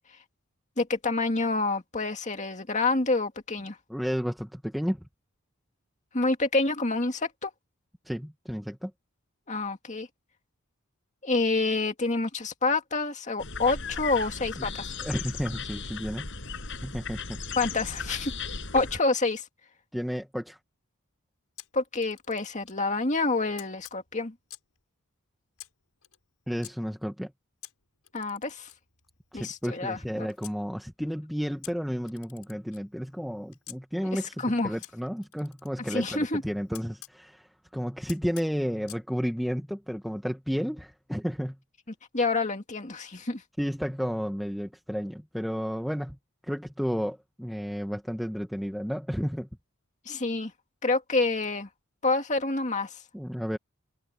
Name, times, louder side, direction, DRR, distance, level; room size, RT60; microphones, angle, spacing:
voice 1, 0.8-3.8 6.1-7.5 9.5-10.1 11.2-14.9 17.6-18.3 18.7-19.4 21.7-24.3 28.1-28.7 29.3-30.3 34.4-34.7 35.9-36.4 42.1-43.4 50.1-50.5 50.8-51.7 52.0-53.0, left 3 dB, 35° left, 2.2 m, -27 dB
voice 2, 3.9-5.0 8.0-8.9 14.6-14.7 15.0-16.3 16.8-17.4 19.9-20.6 26.5-27.3 29.3-41.6 43.6-46.2 46.4-49.5 53.1-53.6, equal, ahead, 1.2 m, -32 dB
sound 1, 13.4-19.0, left 5 dB, 55° left, 6.0 m, -36 dB
Camera, 21.6-22.8 23.6-24.8 25.6-26.7 27.6-30.6 31.6-33.8 34.8-37.2 38.1-39.1, left 14 dB, 85° left, 7.4 m, -50 dB
head